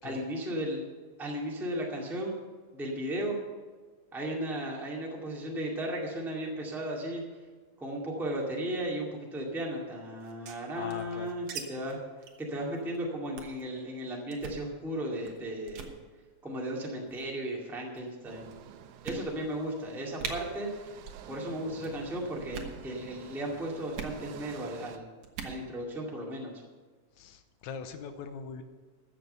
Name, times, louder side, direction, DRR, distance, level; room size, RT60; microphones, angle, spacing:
voice 1, 0.0-0.8 1.2-2.3 2.7-3.4 4.1-7.2 7.8-12.0 12.4-15.9 16.4-18.5 19.0-21.0 21.3-25.1 25.4-26.6, right 1 dB, ahead, -2 dB, 1.5 m, -35 dB
sound 1, 10.2-11.6 11.9-12.0 12.2-12.4 12.8-13.0 13.4-13.6 14.3-14.6 15.2-15.4 15.7-15.9 16.8-17.3 18.0-18.1 18.5-18.6 19.0-19.6 19.9-20.0 20.2-20.3 21.0-21.3 21.5-21.9 22.4-22.8 23.9-24.2 25.2-25.6, right 6 dB, 65° right, 2.3 m, -40 dB
voice 2, 10.7-11.3 27.1-28.6, left 6 dB, 85° left, 8 dB, 2.2 m, -41 dB
sound 2, 18.3-25.0, right 9 dB, 85° right, 2.1 m, -50 dB
15.0 x 6.7 x 6.7 m, 1.4 s
omnidirectional pair, 3.4 m